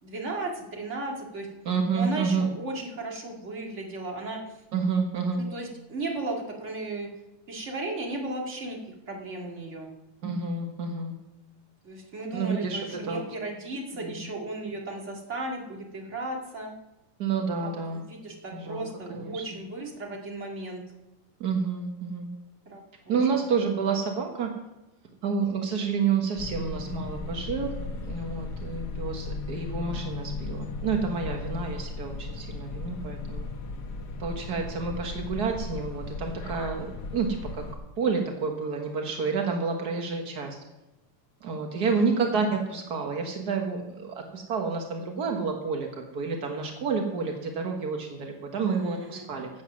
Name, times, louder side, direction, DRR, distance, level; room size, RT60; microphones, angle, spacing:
voice 1, 0.0-1.5 1.9-4.4 5.5-7.1 7.5-8.8 9.1-9.9 11.8-16.7 17.6-20.8 22.7-23.4 41.8-42.1 48.6-49.3, right 2 dB, 25° right, 0 dB, 1.9 m, -35 dB
voice 2, 1.6-2.5 4.7-5.4 10.2-11.1 12.3-13.2 14.0-14.3 17.2-18.0 18.5-19.4 21.4-22.3 23.1-24.5 25.2-27.7 28.0-33.5 34.2-36.9 37.1-37.3 37.6-37.7 38.0-40.6 41.4-49.5, right 5 dB, 75° right, 3 dB, 0.9 m, -29 dB
sound 1, 26.3-37.8, left 3 dB, 85° left, 0.9 m, -36 dB
15.5 x 7.7 x 6.2 m, 1.0 s
omnidirectional pair, 3.7 m